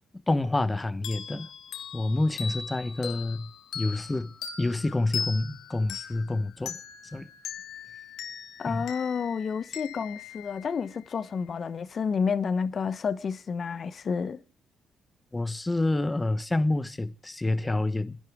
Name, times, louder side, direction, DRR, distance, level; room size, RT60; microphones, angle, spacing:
voice 1, 0.3-1.5 1.9-3.5 3.7-6.8 7.1-7.3 8.7-8.8 15.3-18.2, left 2 dB, 15° left, 1.1 m, -28 dB
sound 1, 1.0-11.3, left 7 dB, 75° left, 1.8 m, -40 dB
voice 2, 8.6-14.4, left 6 dB, 45° left, 0.9 m, -30 dB
30.0 x 11.0 x 3.6 m
cardioid pair, 90°, 0 cm